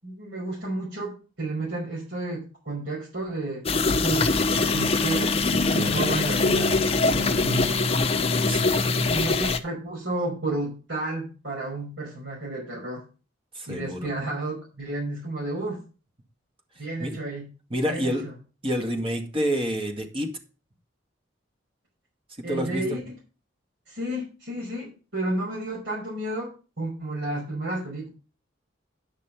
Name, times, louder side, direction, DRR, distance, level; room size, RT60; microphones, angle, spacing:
voice 1, 0.0-4.3 4.7-5.4 5.7-6.8 7.1-7.9 8.9-13.0 13.7-15.8 16.8-17.5 17.9-18.3 22.4-23.2 23.9-28.1, right 2 dB, 70° right, -6 dB, 5.6 m, -32 dB
sound 1, 3.7-9.6, left 3 dB, 30° left, 0.8 m, -23 dB
voice 2, 5.7-6.1 8.5-9.0 13.5-14.1 17.0-17.1 17.7-18.2 18.6-20.4 22.5-23.0, equal, 30° right, 4 dB, 2.0 m, -28 dB
10.5 x 6.0 x 5.8 m, 0.34 s
head